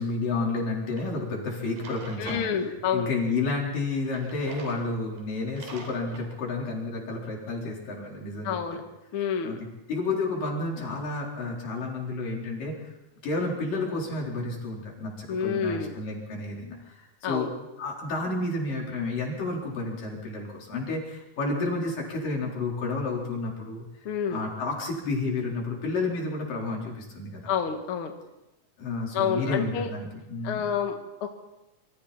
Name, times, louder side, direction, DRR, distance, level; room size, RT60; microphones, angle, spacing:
voice 1, 0.0-8.8 9.4-9.6 9.9-12.9 13.2-23.8 24.3-27.5 28.8-30.7, left 3 dB, 80° left, -2 dB, 5.8 m, -31 dB
Drawer open or close, 1.0-1.1 1.6-2.5 4.0-4.8 5.2-5.3 5.5-6.3, right 3 dB, 85° right, 5.0 m, -43 dB
voice 2, 2.2-3.1 8.4-8.8 9.1-9.6 15.3-16.0 17.2-17.5 24.1-24.4 27.5-28.1 29.1-29.9 30.4-31.3, left 7 dB, 50° left, 5 dB, 2.1 m, -28 dB
26.5 x 24.5 x 4.3 m, 0.94 s
omnidirectional pair, 3.8 m